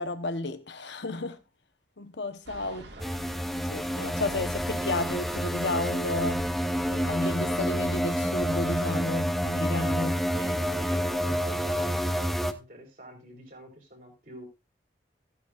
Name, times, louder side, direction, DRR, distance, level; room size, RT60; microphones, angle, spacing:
voice 1, 0.0-1.4 2.0-2.9 3.7-6.5 6.9-10.2, left 2 dB, 80° left, 1.0 m, -32 dB
sound 1, 2.5-8.7, right 1 dB, 75° right, 1.7 m, -47 dB
voice 2, 2.8-3.1 10.3-14.4, equal, 50° right, 4.2 m, -46 dB
sound 2, 3.0-12.5, equal, ahead, 0.5 m, -28 dB
14.5 x 9.8 x 2.4 m
head